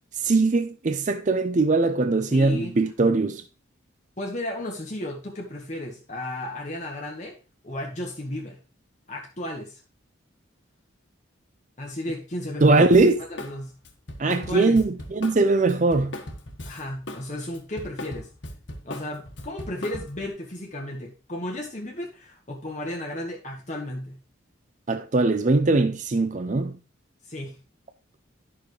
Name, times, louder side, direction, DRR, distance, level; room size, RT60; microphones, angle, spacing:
voice 1, 0.1-3.4 12.6-13.2 14.2-16.1 24.9-26.8, right 3 dB, 40° right, 0.5 m, -21 dB
voice 2, 2.3-2.7 4.2-7.4 7.6-8.6 9.1-9.8 11.8-12.8 13.3-13.7 14.2-14.8 16.6-18.3 18.8-24.2 27.2-27.6, left 1 dB, 35° left, 1.5 m, -34 dB
Drum kit, 12.9-13.6 13.8-17.2 17.5-20.3, left 1 dB, 65° left, 1.7 m, -38 dB
11.5 x 6.3 x 3.2 m
head